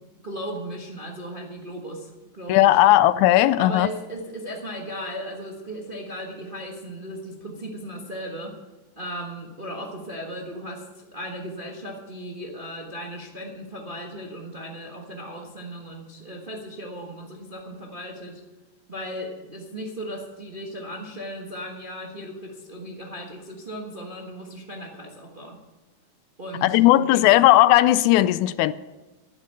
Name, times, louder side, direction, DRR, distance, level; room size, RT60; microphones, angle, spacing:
voice 1, 0.2-2.9 3.6-8.6 9.0-18.4 18.9-25.6 26.4-27.2, equal, 35° right, 0.9 m, -36 dB
voice 2, 2.5-3.9 26.6-28.7, left 15 dB, 85° left, 2.0 m, -17 dB
11.5 x 10.0 x 7.8 m
omnidirectional pair, 3.4 m